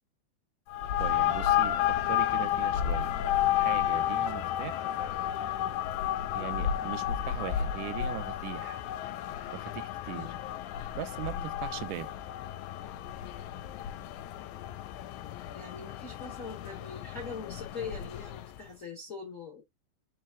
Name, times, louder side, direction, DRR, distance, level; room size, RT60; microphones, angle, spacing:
sound 1, 0.7-18.6, left 11 dB, 80° left, 1.9 m, -32 dB
voice 1, 1.0-3.1 3.5-4.9 6.3-8.8 9.5-10.3 11.0-12.1, right 15 dB, 85° right, 2.0 m, -40 dB
voice 2, 10.1-10.4 11.3-11.6 15.5-19.6, left 5 dB, 45° left, 1.0 m, -42 dB
4.6 x 3.1 x 3.5 m
omnidirectional pair, 3.6 m